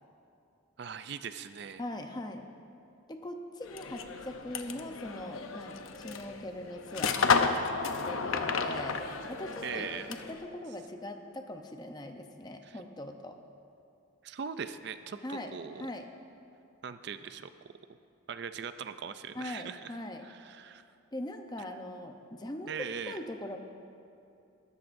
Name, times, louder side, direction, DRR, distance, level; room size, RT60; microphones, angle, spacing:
voice 1, 0.8-1.8 9.6-10.1 12.6-12.8 14.2-15.9 16.8-17.5 18.3-20.0 20.2-20.8 22.7-23.2, right 6 dB, 55° right, 11 dB, 0.4 m, -40 dB
voice 2, 1.8-2.4 3.1-5.8 6.0-7.6 8.1-9.0 9.3-9.9 10.3-13.4 15.2-16.1 19.3-20.2 21.1-22.7 23.1-23.6, left 1 dB, 20° left, 5 dB, 0.7 m, -41 dB
sound 1, 3.7-10.4, left 5 dB, 85° left, 0.7 m, -32 dB
21.0 x 13.5 x 2.6 m, 2.6 s
head